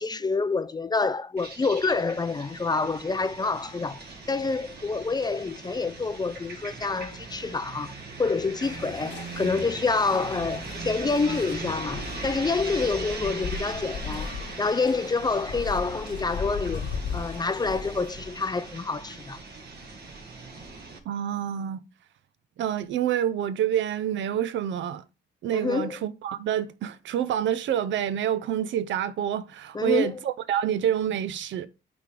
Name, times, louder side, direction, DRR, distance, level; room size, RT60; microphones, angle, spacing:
voice 1, 0.0-14.3 14.6-19.4 25.5-26.0 29.7-30.2, left 4 dB, 20° left, 0.4 m, -27 dB
sound 1, 1.4-21.0, right 3 dB, 55° right, 1.6 m, -40 dB
sound 2, 8.6-18.5, left 6 dB, 65° left, 1.1 m, -38 dB
voice 2, 21.0-21.9 22.6-25.0 25.4-31.7, right 10 dB, 70° right, 0.6 m, -27 dB
8.9 x 3.4 x 3.7 m
cardioid pair, 90°, 20 cm